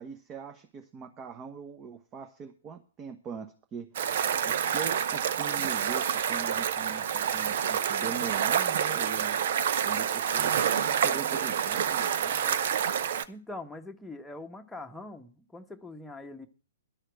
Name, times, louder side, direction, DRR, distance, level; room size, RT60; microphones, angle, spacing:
voice 1, 0.0-3.9 4.4-9.4 9.8-12.6, right 6 dB, 25° right, 1.2 m, -41 dB
sound 1, 3.9-13.2, right 8 dB, 55° right, 0.8 m, -28 dB
voice 2, 13.3-16.5, left 2 dB, 5° left, 1.2 m, -43 dB
12.0 x 6.5 x 7.7 m
figure-of-eight pair, 115°, 0 cm